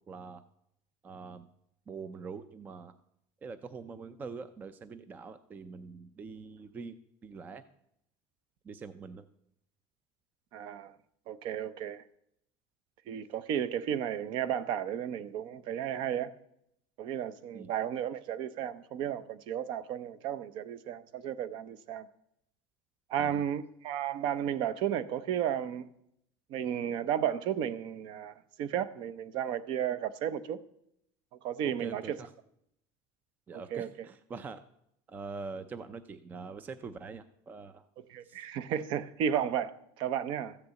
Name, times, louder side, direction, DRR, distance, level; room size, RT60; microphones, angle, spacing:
voice 1, 0.1-0.4 1.0-1.5 1.9-2.9 3.4-7.0 7.2-7.6 8.6-9.2 17.5-17.7 23.2-23.4 31.6-32.3 33.5-34.6 35.1-37.9 38.2-38.4, right 4 dB, 15° right, 0.4 m, -44 dB
voice 2, 10.5-10.9 11.3-12.0 13.1-16.3 17.0-22.1 23.1-25.9 26.5-30.6 31.4-32.2 33.5-33.9 38.1-40.6, right 9 dB, 50° right, 0.7 m, -33 dB
14.0 x 6.7 x 8.2 m
cardioid pair, 180°, 11 cm